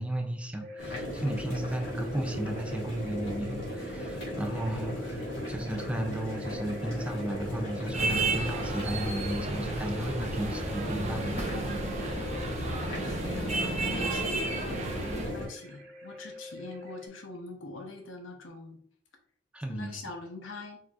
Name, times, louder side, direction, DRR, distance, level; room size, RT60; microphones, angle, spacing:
voice 1, 0.0-11.4 19.5-20.0, right 1 dB, 5° right, 4 dB, 0.4 m, -34 dB
sound 1, 0.6-17.1, left 1 dB, 75° right, 1.7 m, -49 dB
sound 2, 0.8-15.5, equal, 65° left, 1.9 m, -37 dB
sound 3, 7.9-15.3, right 2 dB, 35° right, 0.9 m, -32 dB
voice 2, 12.7-18.8 19.7-20.8, left 3 dB, 85° left, 3 dB, 0.9 m, -43 dB
4.4 x 4.2 x 2.4 m, 0.64 s
head